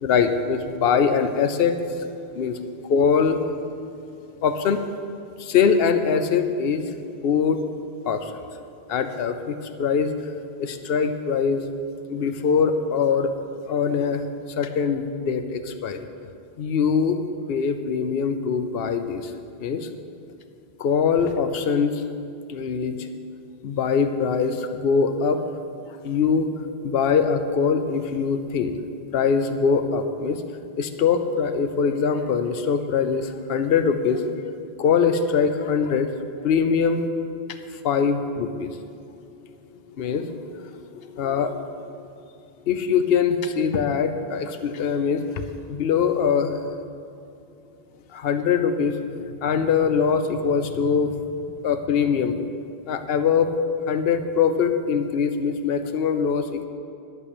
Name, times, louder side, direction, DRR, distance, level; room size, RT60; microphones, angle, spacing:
voice 1, 0.0-1.8 2.3-2.6 2.9-3.4 4.4-4.8 5.4-6.8 7.2-7.6 8.0-8.4 8.9-10.1 10.6-11.6 12.1-13.3 13.7-14.2 14.6-16.1 16.6-17.2 17.5-19.3 19.6-19.9 20.8-22.0 22.5-23.1 23.6-25.4 25.9-26.5 26.8-28.7 29.1-30.4 30.8-36.1 36.4-37.1 37.8-38.8 40.0-41.6 42.0-42.1 42.7-45.2 45.7-46.5 48.1-49.0 49.4-51.2 51.6-52.4 52.9-53.6 53.9-56.7, left 6 dB, 65° left, 9 dB, 0.9 m, -22 dB
11.5 x 6.7 x 8.4 m, 2.7 s
omnidirectional pair, 1.1 m